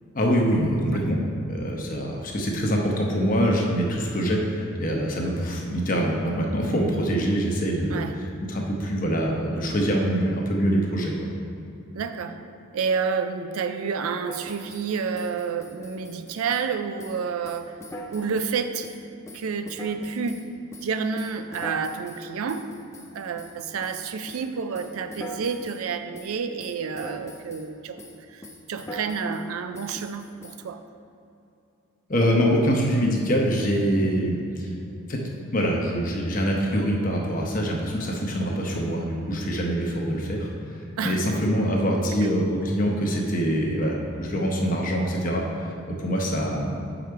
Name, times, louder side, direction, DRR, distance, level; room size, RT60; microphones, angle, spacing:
voice 1, 0.1-1.2 1.5-11.1 32.1-34.7 35.1-35.2 35.5-46.8, equal, 40° left, 0 dB, 0.8 m, -24 dB
voice 2, 11.9-12.4 12.7-17.7 18.1-18.9 19.3-20.5 20.8-22.7 23.1-28.0 28.3-30.8 41.0-41.2 42.1-42.2, right 5 dB, 80° right, 9 dB, 0.4 m, -29 dB
sound 1, 14.3-14.9 15.1-16.7 17.0-17.2 17.4-18.6 18.8-20.5 20.7-24.0 24.3-24.5 24.7-25.8 26.1-26.3 26.6-27.7 28.0-28.2 28.4-29.4 29.7-30.5, equal, 15° left, 0.4 m, -42 dB
6.4 x 5.0 x 4.6 m, 2.7 s
head